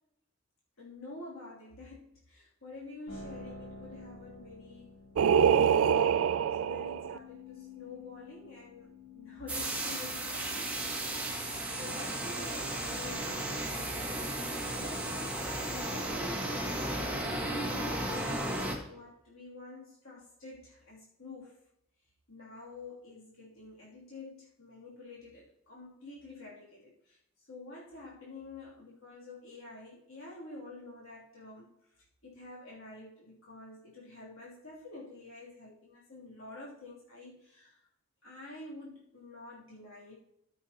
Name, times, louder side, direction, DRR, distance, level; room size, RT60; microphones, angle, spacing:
voice 1, 0.8-5.0 5.4-10.8 11.8-14.3 14.5-18.3 18.9-21.6 22.3-37.8 38.2-40.2, left 2 dB, 80° left, -6 dB, 2.9 m, -48 dB
sound 1, 3.1-15.4, left 4 dB, 55° left, 3.0 m, -52 dB
Singing, 5.2-7.2, right 8 dB, 75° right, 0.4 m, -25 dB
sound 2, 9.5-18.8, right 1 dB, 5° right, 1.6 m, -35 dB
14.0 x 7.1 x 2.9 m, 0.77 s
head